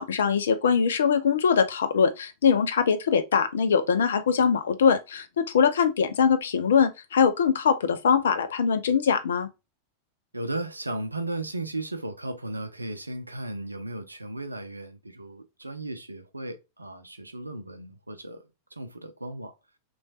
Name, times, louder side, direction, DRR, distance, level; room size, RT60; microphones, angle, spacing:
voice 1, 0.0-9.5, left 6 dB, 65° left, 0.5 m, -22 dB
voice 2, 10.3-18.4 18.7-19.5, right 2 dB, 80° right, 0.5 m, -35 dB
3.1 x 3.0 x 2.6 m
figure-of-eight pair, 90°, 0 cm